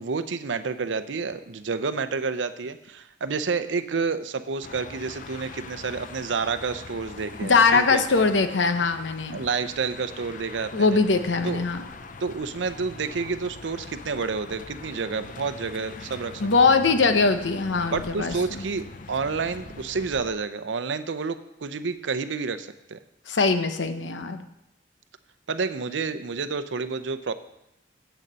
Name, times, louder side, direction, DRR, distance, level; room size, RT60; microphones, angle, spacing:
voice 1, 0.0-8.0 9.3-11.0 11.4-11.6 12.2-16.4 17.9-23.0 25.5-27.3, right 4 dB, 85° right, 12 dB, 0.6 m, -29 dB
sound 1, 4.6-20.3, left 3 dB, 45° left, 0.6 m, -42 dB
voice 2, 7.4-9.4 10.7-11.8 16.4-18.6 23.3-24.4, left 4 dB, 80° left, 8 dB, 0.9 m, -22 dB
8.0 x 6.7 x 7.5 m, 0.85 s
head